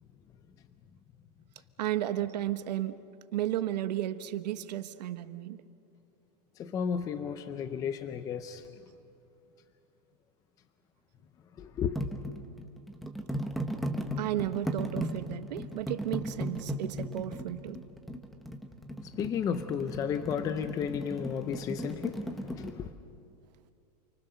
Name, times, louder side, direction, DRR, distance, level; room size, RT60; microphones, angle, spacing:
voice 1, 1.8-3.0 3.3-5.6 14.2-17.8, right 12 dB, 90° right, 11 dB, 1.2 m, -33 dB
voice 2, 6.6-8.6 11.6-12.0 19.2-22.2 22.5-22.9, left 7 dB, 15° left, 10 dB, 0.5 m, -33 dB
sound 1, 12.0-22.7, right 1 dB, ahead, 1.0 m, -36 dB
29.0 x 24.0 x 6.7 m, 2.6 s
supercardioid pair, 170°, 20 cm